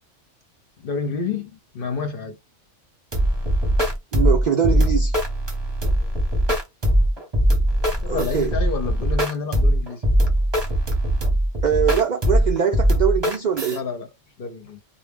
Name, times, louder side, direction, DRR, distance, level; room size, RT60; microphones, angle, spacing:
voice 1, 0.8-2.4 6.0-6.1 7.8-10.1 13.7-14.1 14.4-14.8, left 5 dB, 55° left, 0.7 m, -29 dB
sound 1, 3.1-13.8, equal, 25° right, 0.7 m, -20 dB
voice 2, 4.1-5.2 8.1-8.5 11.6-13.8, right 8 dB, 65° right, 0.4 m, -22 dB
2.2 x 2.1 x 3.3 m
omnidirectional pair, 1.3 m